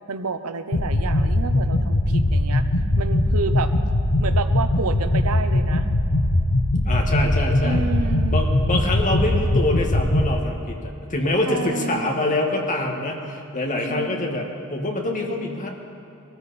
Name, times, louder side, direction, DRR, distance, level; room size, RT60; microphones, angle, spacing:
voice 1, 0.1-2.6 3.0-3.7 4.2-5.9 7.6-8.4 11.5-12.3 13.9-14.6, right 4 dB, 90° right, 10 dB, 0.8 m, -30 dB
sound 1, 0.7-10.3, left 1 dB, 70° left, 1.0 m, -21 dB
voice 2, 6.9-7.8 8.3-15.7, left 1 dB, 35° left, 1 dB, 1.8 m, -25 dB
21.5 x 14.0 x 4.2 m, 2.9 s
head